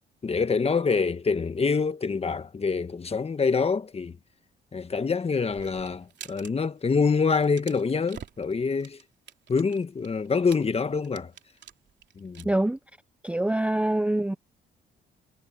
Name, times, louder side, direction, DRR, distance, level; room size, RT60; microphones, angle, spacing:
voice 1, 0.2-4.1 4.7-9.0 9.5-11.3 12.2-12.4, left 5 dB, 30° left, 1.4 m, -26 dB
sound 1, 5.5-6.5 6.8-7.0 7.3-12.4, right 9 dB, 60° right, 3.2 m, -47 dB
voice 2, 12.4-12.8 13.2-14.4, right 1 dB, 5° right, 0.7 m, -25 dB
cardioid pair, 90°, 20 cm